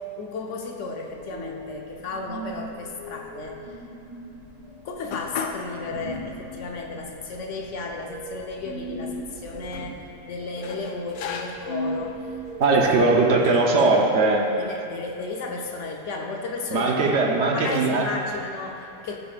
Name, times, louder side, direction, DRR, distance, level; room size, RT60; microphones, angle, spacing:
voice 1, 0.0-3.7 4.8-12.3 12.7-13.3 14.6-19.2, left 3 dB, 65° left, 2 dB, 0.8 m, -34 dB
sound 1, 1.0-12.9, equal, 80° right, 2.6 m, -38 dB
sound 2, 5.1-5.7 6.1-6.2 7.0-7.1 7.4-8.4 9.2-9.9 10.6-11.8 12.5-12.8 13.4-13.9, left 6 dB, 90° left, 1.2 m, -37 dB
voice 2, 12.6-14.4 16.7-18.1, right 3 dB, 55° right, 1 dB, 0.8 m, -20 dB
13.5 x 6.9 x 2.4 m, 2.7 s
omnidirectional pair, 1.8 m